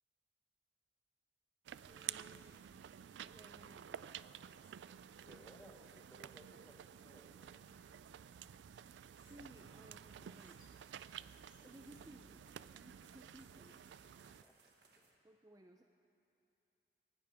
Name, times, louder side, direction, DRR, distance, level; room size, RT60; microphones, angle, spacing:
Female speech woman speaking, 1.7-3.0 3.8-6.1 6.7-6.8 7.0-9.5 9.9-12.3 12.8-14.0, left 2 dB, 50° left, 2.5 m, -74 dB
sound 1, 1.7-14.4, right 10 dB, 85° right, 0.3 m, -52 dB
voice 1, 1.9-2.6 3.3-4.0 5.6-5.8 9.2-10.6 11.6-12.5 12.7-13.8 15.2-15.8, right 1 dB, 20° right, 3 dB, 0.5 m, -60 dB
voice 2, 5.2-5.8 6.1-7.5 14.1-14.6 15.0-15.1, equal, 10° left, 2 dB, 1.0 m, -62 dB
sound 2, 5.9-15.2, right 3 dB, 70° right, 1.5 m, -71 dB
19.5 x 17.0 x 3.5 m, 2.7 s
head